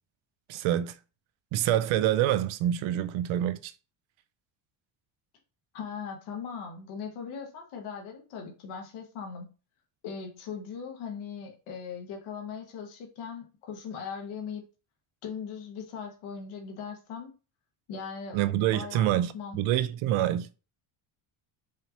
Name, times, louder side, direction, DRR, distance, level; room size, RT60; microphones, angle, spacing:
voice 1, 0.5-0.9 1.5-3.7 18.3-20.5, right 12 dB, 75° right, 0.6 m, -26 dB
voice 2, 5.7-9.5 10.0-14.6 15.2-17.3 17.9-18.4 18.7-19.6, left 6 dB, 80° left, 1.3 m, -39 dB
5.0 x 2.7 x 2.8 m
cardioid pair, 120°, 48 cm